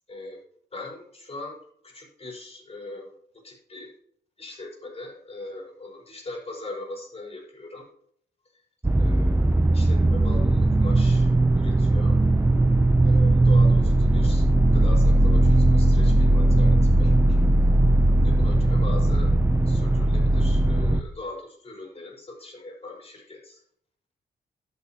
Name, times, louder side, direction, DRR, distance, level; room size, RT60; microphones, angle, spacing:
voice 1, 0.1-0.4 0.7-1.6 1.8-3.1 3.4-3.9 4.4-7.8 8.9-9.5 9.7-12.2 13.0-14.5 14.7-17.4 18.2-19.3 19.6-23.6, left 2 dB, 35° left, -2 dB, 5.0 m, -40 dB
sound 1, 8.8-21.0, right 2 dB, 10° right, 0.7 m, -19 dB
12.0 x 9.6 x 3.0 m, 0.65 s
cardioid pair, 85°, 17 cm